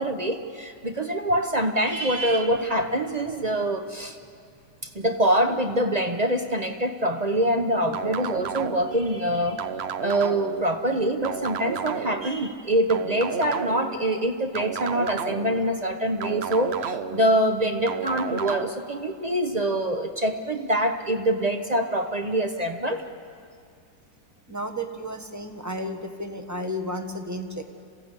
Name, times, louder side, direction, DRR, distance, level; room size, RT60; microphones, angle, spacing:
voice 1, 0.0-4.2 4.8-9.7 10.0-23.0, right 1 dB, 35° right, 6 dB, 0.7 m, -25 dB
sound 1, 7.9-9.0 9.6-10.6 11.2-12.3 12.9-13.9 14.5-15.6 16.2-17.2 17.9-18.7, right 7 dB, 75° right, 0.6 m, -31 dB
voice 2, 24.5-27.6, equal, 10° right, 5 dB, 1.1 m, -32 dB
27.0 x 16.0 x 8.2 m, 2.4 s
omnidirectional pair, 2.1 m